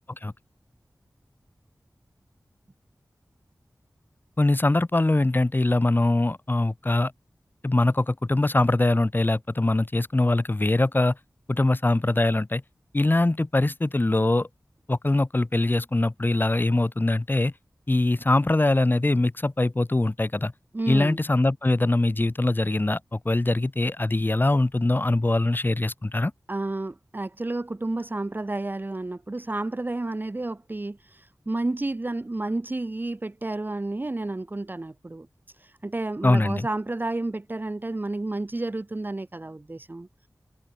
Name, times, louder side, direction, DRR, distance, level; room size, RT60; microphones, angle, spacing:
voice 1, 4.4-7.1 7.6-11.1 11.5-12.6 12.9-14.5 14.9-17.5 17.9-20.5 20.9-26.3 36.2-36.7, left 2 dB, 35° left, 3.0 m, -22 dB
voice 2, 20.7-21.2 26.5-35.3 35.8-40.1, right 2 dB, 30° right, 0.9 m, -31 dB
wide cardioid pair, 65°, 6 cm